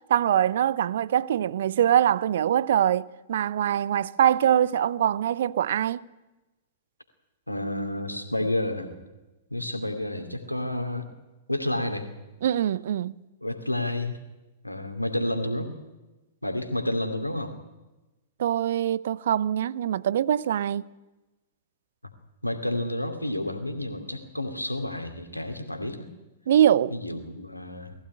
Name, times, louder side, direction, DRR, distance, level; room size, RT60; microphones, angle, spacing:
voice 1, 0.1-6.0 12.4-13.1 18.4-20.8 26.5-26.9, right 10 dB, 55° right, 0.7 m, -23 dB
voice 2, 7.5-8.9 9.5-11.1 11.5-12.1 13.4-14.2 14.6-15.7 16.4-17.5 22.4-26.1 26.9-27.9, left 1 dB, 85° left, 2.6 m, -30 dB
20.0 x 15.5 x 9.7 m
figure-of-eight pair, 100°, 0 cm